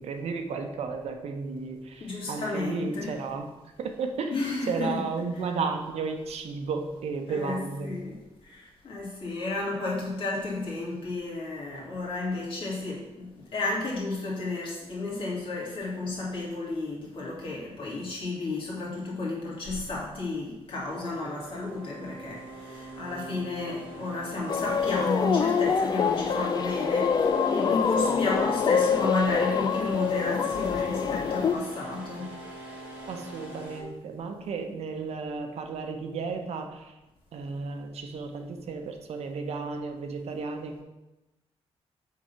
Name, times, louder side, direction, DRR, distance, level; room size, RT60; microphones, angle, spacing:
voice 1, 0.0-3.5 3.8-4.4 4.7-8.0 33.1-36.9 37.3-40.8, right 4 dB, 75° right, 5 dB, 0.8 m, -33 dB
voice 2, 2.0-3.2 4.3-5.0 7.3-8.2 8.4-32.4, left 3 dB, 55° left, -4 dB, 2.5 m, -32 dB
sound 1, 20.8-33.8, right 1 dB, 15° right, 1.3 m, -44 dB
sound 2, 24.5-31.5, left 6 dB, 40° left, 0.4 m, -25 dB
7.4 x 3.9 x 5.8 m, 1.0 s
wide cardioid pair, 170°, 11 cm